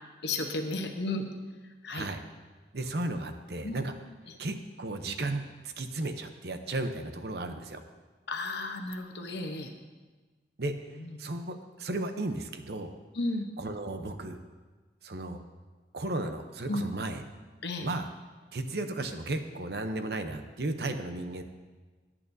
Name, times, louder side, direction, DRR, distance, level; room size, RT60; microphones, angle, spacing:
voice 1, 0.2-1.3 1.8-2.1 3.6-3.8 4.3-4.4 8.3-9.7 11.0-11.2 13.1-13.5 16.7-16.9 17.6-17.9, left 2 dB, 80° left, 4 dB, 0.9 m, -33 dB
voice 2, 1.9-2.2 2.7-3.9 4.4-7.8 10.6-10.7 11.2-12.9 13.6-14.4 15.0-15.4 15.9-17.2 17.8-18.1 18.5-21.4, right 2 dB, 70° right, 7 dB, 0.8 m, -34 dB
17.5 x 8.6 x 2.7 m, 1.3 s
head